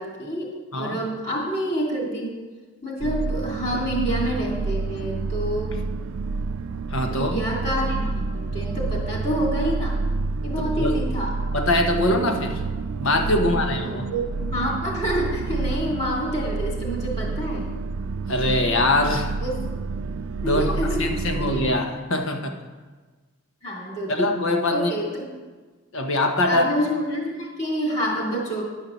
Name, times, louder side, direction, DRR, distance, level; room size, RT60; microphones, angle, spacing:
voice 1, 0.0-2.3 2.8-5.8 7.1-10.0 10.4-11.3 13.4-17.7 19.4-19.5 20.4-21.7 23.6-24.3 24.7-25.2 26.5-28.6, equal, 30° left, -2 dB, 2.8 m, -28 dB
sound 1, 3.0-21.7, right 3 dB, 70° right, 0.4 m, -28 dB
voice 2, 6.9-7.4 10.7-11.0 11.5-12.6 13.0-14.1 18.3-19.4 20.4-20.7 21.0-22.5 24.1-24.9 25.9-26.7, left 1 dB, 75° left, 4 dB, 1.3 m, -23 dB
10.5 x 5.8 x 6.9 m, 1.3 s
head